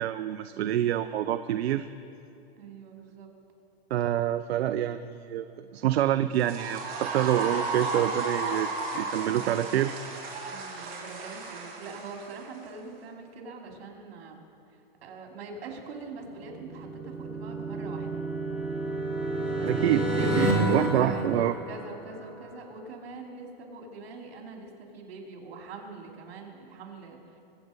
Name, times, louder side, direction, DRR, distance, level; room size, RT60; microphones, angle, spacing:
voice 1, 0.0-1.9 3.9-10.0 19.6-21.6, right 11 dB, 90° right, 11 dB, 0.5 m, -27 dB
voice 2, 2.6-3.3 10.4-14.4 15.0-18.3 19.3-27.2, right 3 dB, 70° right, 1 dB, 3.3 m, -43 dB
sound 1, 6.3-12.7, right 3 dB, 30° right, 3.2 m, -34 dB
sound 2, 16.4-22.2, right 1 dB, 5° right, 2.2 m, -29 dB
23.5 x 8.3 x 5.3 m, 2.6 s
hypercardioid pair, 140°, 31 cm